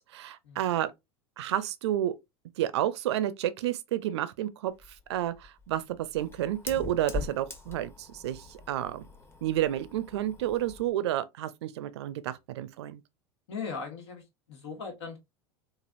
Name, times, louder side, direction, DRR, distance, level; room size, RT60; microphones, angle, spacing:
voice 1, 0.1-0.9 1.4-2.1 2.6-9.0 9.4-13.0, right 12 dB, 75° right, 0.4 m, -30 dB
Fire, 4.7-10.9, left 4 dB, 15° left, 0.9 m, -42 dB
voice 2, 13.5-15.2, left 5 dB, 75° left, 1.3 m, -39 dB
3.2 x 2.4 x 2.4 m
hypercardioid pair, 90°, 14 cm